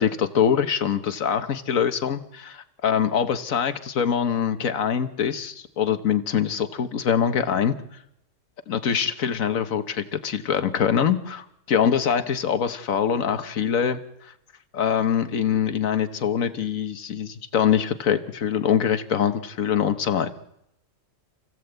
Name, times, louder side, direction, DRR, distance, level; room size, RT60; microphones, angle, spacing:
voice 1, 0.0-7.8 8.7-14.3 14.7-20.3, left 8 dB, 85° left, 10 dB, 1.6 m, -24 dB
28.5 x 15.5 x 8.0 m, 0.84 s
omnidirectional pair, 1.4 m